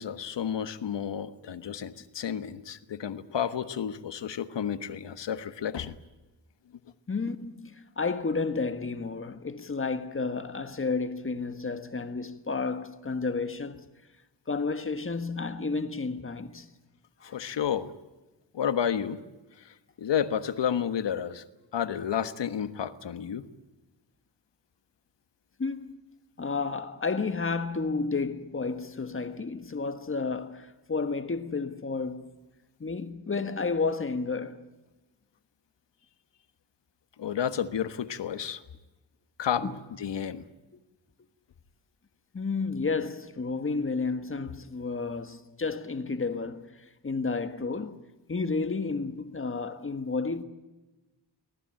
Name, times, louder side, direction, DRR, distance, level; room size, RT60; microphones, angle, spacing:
voice 1, 0.0-5.9 17.2-17.9 18.5-19.2 19.6-21.4 21.7-23.5 37.2-38.6 39.4-39.7 40.0-40.4, left 8 dB, 75° left, 1.5 m, -31 dB
voice 2, 7.1-13.8 14.5-16.7 17.2-17.4 25.6-26.0 26.4-32.3 32.8-34.6 39.6-39.7 42.3-48.0 48.3-50.4, left 4 dB, 30° left, 1.5 m, -31 dB
24.5 x 18.5 x 9.0 m
wide cardioid pair, 145°, 43 cm